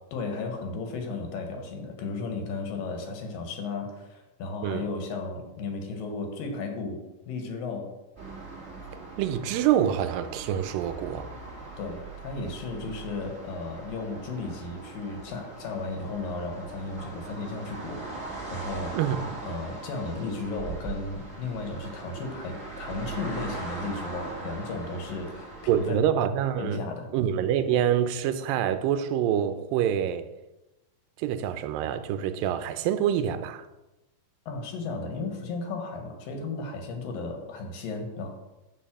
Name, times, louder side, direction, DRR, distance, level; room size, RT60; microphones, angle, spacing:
voice 1, 0.1-7.0 7.3-7.9 11.8-19.0 19.4-26.1 26.6-27.1 34.5-38.3, left 3 dB, 90° left, 3.1 m, -34 dB
sound 1, 8.2-25.9, right 3 dB, 25° right, 3.3 m, -40 dB
voice 2, 9.2-11.3 18.9-19.3 25.7-26.8 27.1-30.2 31.2-33.7, right 10 dB, 85° right, 2.4 m, -26 dB
10.5 x 4.2 x 7.4 m
omnidirectional pair, 3.9 m